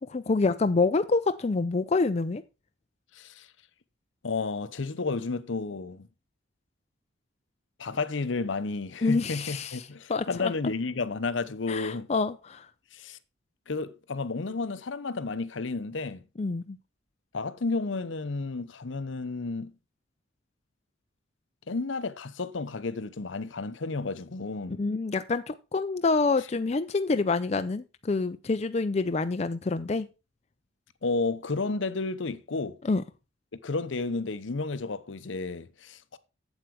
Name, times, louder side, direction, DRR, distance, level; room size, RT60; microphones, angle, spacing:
voice 1, 0.0-2.4 9.0-10.5 11.7-12.7 16.4-16.8 24.8-30.1 32.8-33.0, left 3 dB, 35° left, 0.4 m, -27 dB
voice 2, 3.1-3.5 4.2-6.1 7.8-12.1 12.9-13.2 13.7-16.2 17.3-19.7 21.7-24.8 31.0-32.8 33.6-36.2, left 3 dB, 70° left, 0.8 m, -32 dB
8.1 x 7.8 x 4.7 m
head